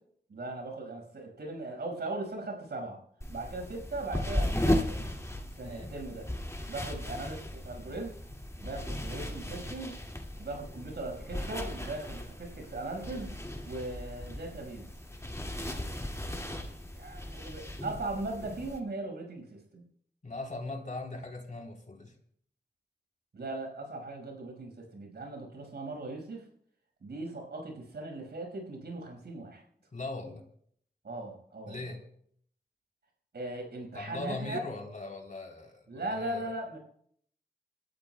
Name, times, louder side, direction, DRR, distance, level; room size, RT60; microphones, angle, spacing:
voice 1, 0.3-3.0 3.3-5.1 5.6-6.3 6.7-8.2 8.6-10.0 10.4-13.3 13.6-14.9 16.9-19.9 23.3-26.5 27.0-29.6 31.0-31.9 33.3-34.6 35.9-36.8, right 2 dB, 75° right, 2 dB, 5.2 m, -39 dB
sound 1, 3.2-18.8, left 1 dB, 15° left, 2.1 m, -36 dB
voice 2, 20.2-22.1 29.9-30.4 31.7-32.0 33.9-36.5, left 2 dB, 50° left, 2 dB, 3.6 m, -40 dB
29.0 x 13.5 x 2.2 m, 0.64 s
cardioid pair, 45°, 17 cm